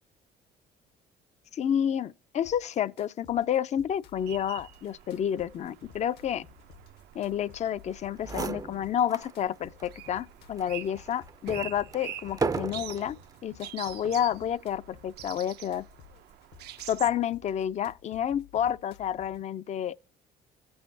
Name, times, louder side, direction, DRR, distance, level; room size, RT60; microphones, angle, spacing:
voice 1, 1.5-6.4 7.1-13.2 13.4-15.9 16.9-20.0, left 9 dB, 40° left, 0.4 m, -30 dB
sound 1, 2.4-19.4, left 8 dB, 70° left, 0.9 m, -55 dB
sound 2, 4.2-17.1, right 12 dB, 70° right, 0.6 m, -46 dB
sound 3, 7.9-8.0 8.2-9.3 9.8-9.9 10.6-13.2 13.9-14.3, right 4 dB, 20° right, 0.5 m, -35 dB
16.0 x 5.5 x 2.6 m
supercardioid pair, 75°, 18 cm